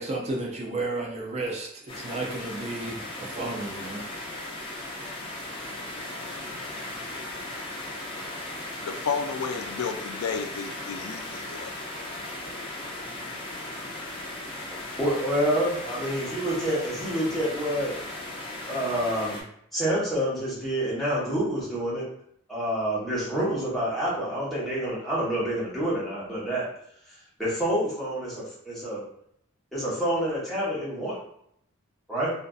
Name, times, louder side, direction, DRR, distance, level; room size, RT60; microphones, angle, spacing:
voice 1, 0.0-4.1, right 2 dB, 30° right, -1 dB, 0.4 m, -32 dB
sound 1, 1.9-19.4, left 1 dB, 25° left, 0.5 m, -37 dB
voice 2, 8.8-11.7, left 6 dB, 85° left, 6 dB, 0.3 m, -32 dB
voice 3, 15.0-17.9 18.7-19.4 19.7-22.0 22.5-26.7 27.4-29.0 29.7-31.2 32.1-32.3, right 1 dB, ahead, -8 dB, 0.9 m, -27 dB
2.5 x 2.4 x 2.3 m, 0.71 s
head